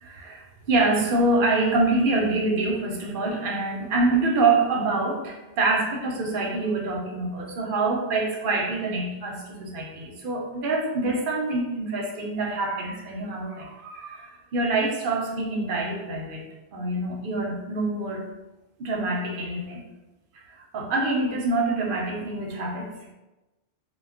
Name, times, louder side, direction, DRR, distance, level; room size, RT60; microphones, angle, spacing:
voice 1, 0.0-18.3 18.8-19.8 20.3-23.1, right 2 dB, 60° right, 0 dB, 0.6 m, -26 dB
2.2 x 2.0 x 3.5 m, 1.0 s
omnidirectional pair, 1.2 m